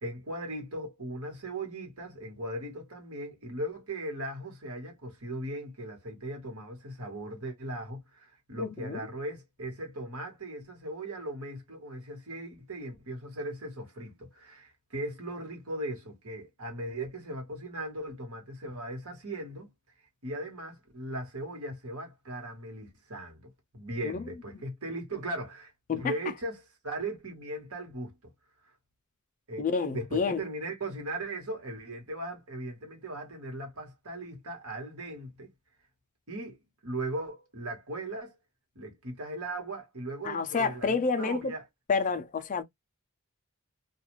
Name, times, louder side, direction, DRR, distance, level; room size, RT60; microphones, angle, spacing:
voice 1, 0.0-19.7 20.2-25.7 26.0-28.2 29.5-29.7 29.9-35.5 36.3-38.3 38.7-41.6, right 1 dB, 85° right, 1.3 m, -38 dB
voice 2, 8.6-9.0 24.0-24.2 25.9-26.0 29.6-30.4 40.2-41.4 41.9-42.6, left 5 dB, 35° left, 0.4 m, -29 dB
2.4 x 2.3 x 3.0 m
head